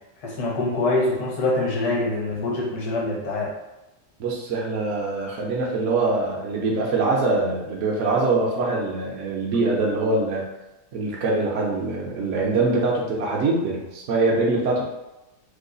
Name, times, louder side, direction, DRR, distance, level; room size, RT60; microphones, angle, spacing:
voice 1, 0.2-3.5, left 2 dB, 65° left, -3 dB, 1.4 m, -24 dB
voice 2, 4.2-10.5 10.9-14.8, right 3 dB, 65° right, -3 dB, 0.7 m, -23 dB
3.1 x 2.2 x 3.8 m, 0.99 s
omnidirectional pair, 1.8 m